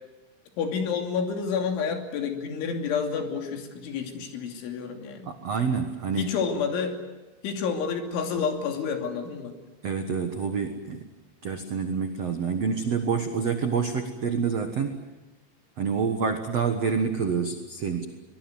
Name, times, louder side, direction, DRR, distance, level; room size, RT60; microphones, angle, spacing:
voice 1, 0.6-5.3 6.2-7.0 7.4-9.6, left 6 dB, 80° left, 4 dB, 5.3 m, -29 dB
voice 2, 5.2-6.3 9.8-11.1 11.4-15.0 15.8-18.0, right 5 dB, 75° right, 6 dB, 1.5 m, -27 dB
24.5 x 21.0 x 9.5 m, 1.1 s
omnidirectional pair, 5.4 m